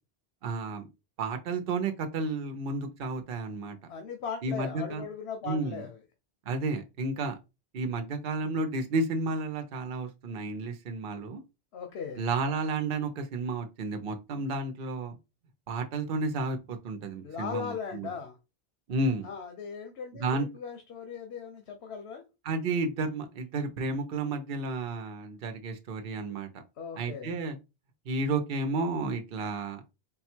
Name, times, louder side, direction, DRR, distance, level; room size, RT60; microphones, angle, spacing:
voice 1, 0.4-0.9 1.2-3.8 4.4-5.0 5.4-5.8 6.5-7.4 7.7-11.4 12.2-15.2 15.7-18.1 18.9-19.3 20.1-20.5 22.4-26.5 27.0-27.6 28.1-29.8, right 3 dB, 60° right, 0.8 m, -32 dB
voice 2, 3.9-6.0 11.7-12.2 17.2-18.4 19.2-22.2 26.2-26.3 26.8-27.3, left 6 dB, 80° left, 1.0 m, -38 dB
3.8 x 2.3 x 4.4 m
omnidirectional pair, 1.1 m